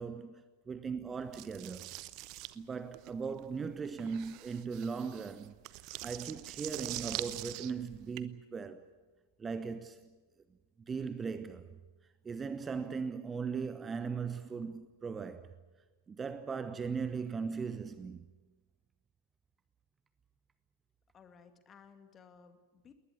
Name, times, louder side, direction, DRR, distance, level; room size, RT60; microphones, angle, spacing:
voice 1, 0.0-1.9 2.5-5.5 6.0-8.8 9.4-10.2 10.9-11.8 12.2-15.5 16.1-18.2, right 5 dB, 15° right, 1.0 m, -38 dB
sound 1, 1.3-8.2, right 18 dB, 40° right, 0.9 m, -44 dB
voice 2, 21.1-22.9, left 6 dB, 25° left, 2.4 m, -58 dB
21.0 x 19.5 x 9.6 m
figure-of-eight pair, 90°, 0 cm